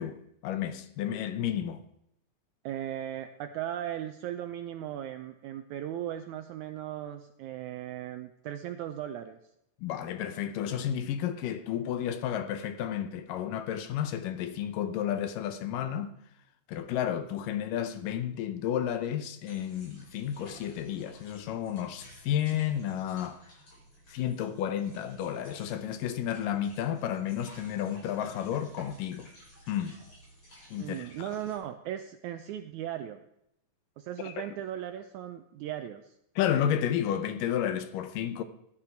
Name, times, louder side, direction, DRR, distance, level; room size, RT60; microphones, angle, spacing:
voice 1, 0.0-1.8 9.8-16.1 16.7-23.4 24.1-29.3 29.7-30.0 30.7-31.1 34.2-34.3 36.4-38.4, left 10 dB, 75° left, 2.4 m, -32 dB
voice 2, 2.6-9.4 30.8-33.2 34.0-36.1, right 11 dB, 80° right, 1.7 m, -37 dB
sound 1, 19.5-31.6, equal, 40° left, 6.2 m, -54 dB
15.5 x 11.0 x 4.5 m
omnidirectional pair, 4.0 m